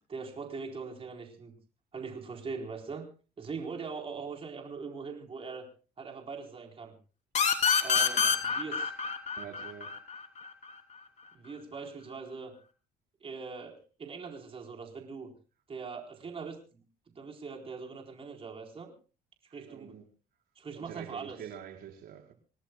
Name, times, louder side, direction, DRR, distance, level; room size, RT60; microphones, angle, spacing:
voice 1, 0.1-1.5 1.9-3.1 3.4-5.7 6.0-6.9 7.8-8.9 11.3-12.5 13.2-15.3 15.7-16.8 17.1-18.9 19.5-20.0 20.6-21.4, right 5 dB, 35° right, 4.3 m, -41 dB
sound 1, 7.3-10.7, left 6 dB, 45° left, 3.5 m, -27 dB
voice 2, 8.0-8.3 9.4-10.0 19.7-20.0 20.7-22.3, right 9 dB, 65° right, 5.1 m, -46 dB
28.0 x 18.5 x 2.3 m
cardioid pair, 110°, 17 cm